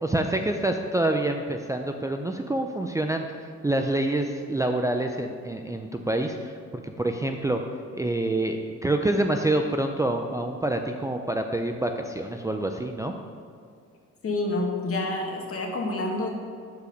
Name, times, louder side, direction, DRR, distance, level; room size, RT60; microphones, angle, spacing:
voice 1, 0.0-3.3 3.6-6.5 6.8-7.6 7.9-13.1, right 1 dB, 10° right, 3 dB, 0.5 m, -27 dB
voice 2, 14.2-16.3, left 2 dB, 50° left, 0 dB, 1.8 m, -28 dB
11.5 x 4.9 x 5.2 m, 2.2 s
cardioid pair, 90°, 30 cm